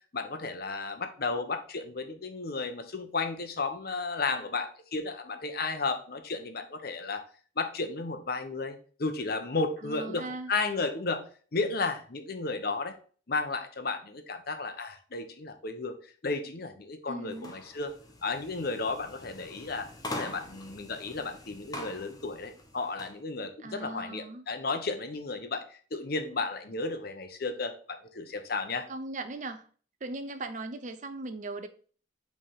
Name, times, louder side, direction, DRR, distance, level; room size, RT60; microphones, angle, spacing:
voice 1, 0.1-7.2 7.6-11.3 11.5-12.9 13.3-17.9 18.2-19.9 20.1-28.9, left 3 dB, 50° left, 0.8 m, -33 dB
voice 2, 9.8-10.5 17.1-17.6 23.6-24.5 28.9-29.7 30.0-31.7, right 2 dB, 40° right, 0.5 m, -38 dB
sound 1, 17.3-23.2, left 2 dB, 20° left, 0.9 m, -43 dB
5.5 x 3.4 x 5.5 m
head